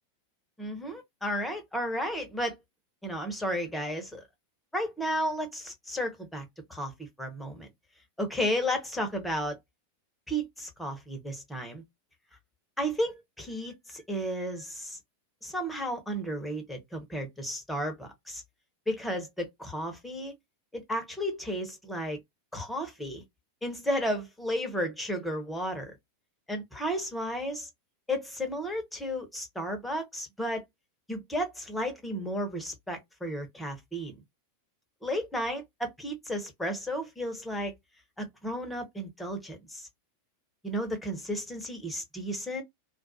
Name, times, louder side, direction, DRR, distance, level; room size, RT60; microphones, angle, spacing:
voice 1, 0.6-2.6 3.0-4.2 4.7-6.4 6.7-6.9 7.2-7.7 8.2-9.6 10.3-11.8 12.8-15.0 15.4-18.4 18.9-20.3 20.7-22.2 22.5-23.2 23.6-25.9 26.5-27.7 28.1-30.6 31.1-34.2 35.0-37.7 38.2-39.9 40.6-42.6, equal, 5° left, 0.8 m, -33 dB
2.3 x 2.1 x 2.6 m
figure-of-eight pair, 90°, 0 cm